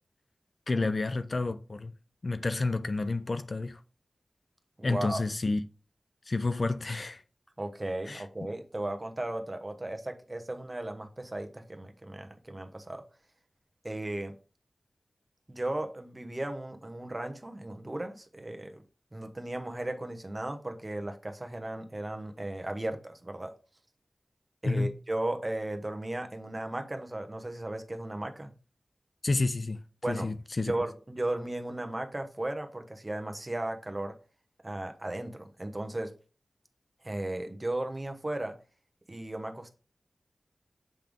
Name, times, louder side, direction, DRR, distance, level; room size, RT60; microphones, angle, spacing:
voice 1, 0.7-1.9 2.2-3.8 4.8-5.6 6.3-7.2 8.1-8.2 24.6-24.9 29.2-29.8 30.1-30.7, left 3 dB, 50° left, 0.4 m, -30 dB
voice 2, 4.8-5.2 7.6-13.0 13.8-14.3 15.5-18.8 19.1-23.5 24.6-28.5 30.0-30.3 30.7-34.1 34.6-36.1 37.0-38.5 39.1-39.7, right 1 dB, 30° right, 1.0 m, -36 dB
7.6 x 3.4 x 3.5 m
wide cardioid pair, 65°, 0 cm